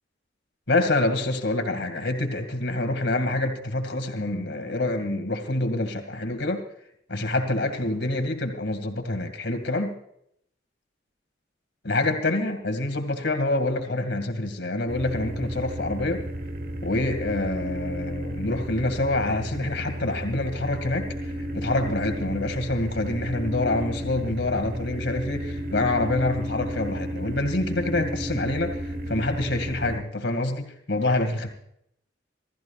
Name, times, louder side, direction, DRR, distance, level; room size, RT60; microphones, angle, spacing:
voice 1, 0.7-6.6 7.1-9.9 11.8-16.2 16.8-31.5, left 2 dB, 80° left, 6 dB, 2.4 m, -26 dB
sound 1, 14.9-30.0, right 1 dB, 50° right, 1.4 m, -33 dB
27.0 x 14.5 x 2.5 m, 0.71 s
head